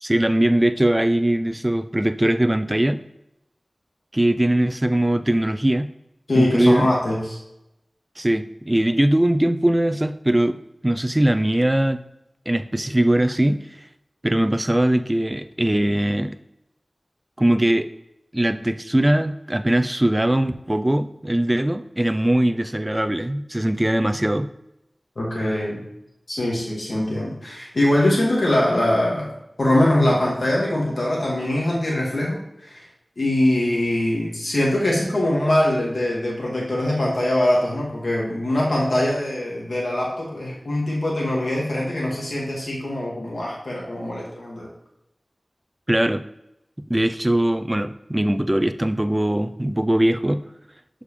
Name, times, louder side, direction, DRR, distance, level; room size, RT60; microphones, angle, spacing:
voice 1, 0.0-3.0 4.1-5.9 6.3-6.9 8.2-12.0 12.5-13.6 14.2-16.4 17.4-17.9 18.3-24.5 45.9-46.2 46.9-50.4, right 1 dB, 20° right, 10 dB, 0.4 m, -21 dB
voice 2, 6.3-7.4 25.2-25.8 26.3-29.3 29.6-32.8 33.2-44.7, left 1 dB, 75° left, -4 dB, 2.0 m, -22 dB
7.1 x 5.0 x 3.3 m, 0.86 s
wide cardioid pair, 60°, 0 cm